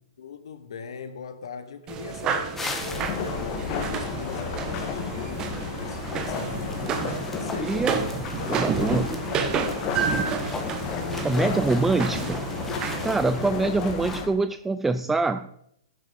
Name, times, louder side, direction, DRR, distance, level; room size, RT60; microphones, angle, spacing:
voice 1, 0.2-5.4 5.8-7.0 7.3-10.4, left 6 dB, 75° left, 1.2 m, -41 dB
sound 1, 1.9-13.5, right 6 dB, 25° right, 1.6 m, -31 dB
sound 2, 2.5-14.2, left 3 dB, 10° left, 2.0 m, -40 dB
sound 3, 2.8-14.3, left 6 dB, 40° left, 2.4 m, -32 dB
voice 2, 7.6-8.0 8.5-9.1 11.2-12.5 13.0-15.5, right 3 dB, 10° right, 0.4 m, -24 dB
12.0 x 10.0 x 5.2 m
hypercardioid pair, 130°, 3 cm